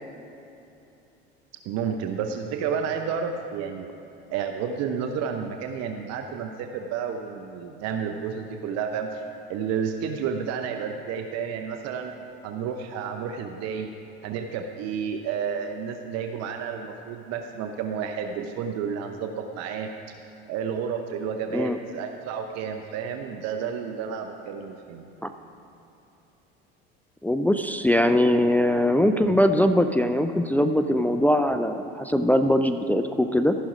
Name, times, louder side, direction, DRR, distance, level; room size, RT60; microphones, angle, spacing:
voice 1, 1.6-3.9 4.3-9.2 9.5-12.1 12.4-13.9 14.2-19.9 20.5-25.1, right 7 dB, 55° right, 5 dB, 0.8 m, -31 dB
voice 2, 27.2-33.5, left 1 dB, 5° left, 7 dB, 0.4 m, -21 dB
14.5 x 6.2 x 5.1 m, 2.9 s
hypercardioid pair, 75°, 31 cm